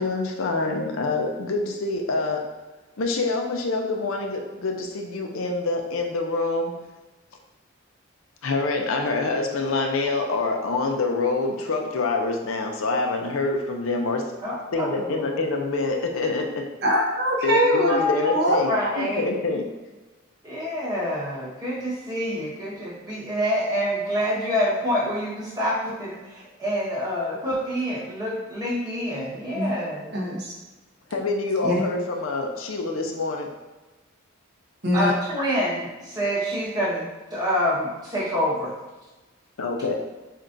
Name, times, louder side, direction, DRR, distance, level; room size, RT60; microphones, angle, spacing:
voice 1, 0.0-2.4 3.0-6.7 8.4-14.2 14.7-16.7 17.4-19.7 31.1-33.5 39.6-39.9, left 3 dB, 80° left, 2 dB, 0.6 m, -26 dB
voice 2, 14.4-15.3 17.9-18.4 18.6-19.3 20.4-30.1 34.9-38.7, equal, 20° right, -8 dB, 1.2 m, -27 dB
voice 3, 16.8-18.0 18.3-18.6 29.5-29.7 30.1-30.5 31.6-31.8 34.8-35.1, equal, 50° right, -2 dB, 0.8 m, -22 dB
7.3 x 2.5 x 2.6 m, 1.1 s
head